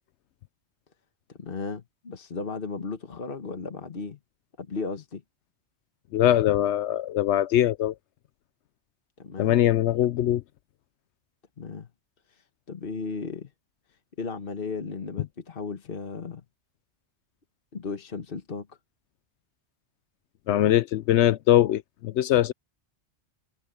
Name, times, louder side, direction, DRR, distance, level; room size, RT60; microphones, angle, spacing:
voice 1, 1.3-4.2 4.6-5.2 9.2-9.6 11.6-11.9 12.3-12.4 12.7-13.5 14.2-16.4 17.7-18.8, left 4 dB, 55° left, 1.5 m, -35 dB
voice 2, 6.1-7.9 9.4-10.4 20.5-22.5, left 12 dB, 85° left, 0.9 m, -22 dB
omnidirectional pair, 1.1 m